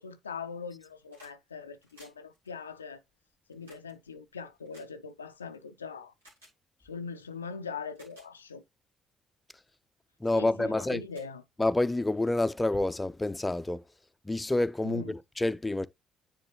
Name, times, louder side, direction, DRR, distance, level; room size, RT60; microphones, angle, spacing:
voice 1, 0.0-3.0 3.5-6.1 6.8-8.6 10.3-11.4 14.8-15.2, left 5 dB, 90° left, 0.4 m, -41 dB
sound 1, 0.7-1.4 1.7-5.6 6.2-6.6 7.3-7.4 7.8-8.3 8.9-9.1 9.7-9.9 10.2-10.4 10.8-10.9 11.1-12.0 13.2-13.3, equal, 85° right, 2.0 m, -59 dB
voice 2, 10.2-11.0 11.6-13.8 14.3-15.9, left 2 dB, 15° left, 0.5 m, -28 dB
9.9 x 3.3 x 2.9 m
figure-of-eight pair, 45°, 0 cm